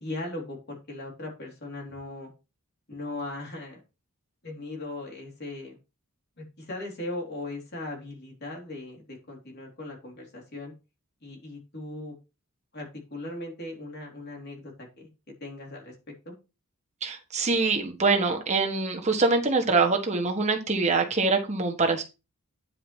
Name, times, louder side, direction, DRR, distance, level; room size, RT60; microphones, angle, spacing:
voice 1, 0.0-2.3 2.9-3.8 4.4-5.8 6.4-10.7 11.2-12.2 12.7-15.1 15.4-15.9 16.2-16.3, left 2 dB, 50° left, 0 dB, 3.5 m, -38 dB
voice 2, 17.0-22.0, right 3 dB, 30° right, 3 dB, 1.5 m, -24 dB
9.8 x 4.9 x 4.5 m, 0.28 s
head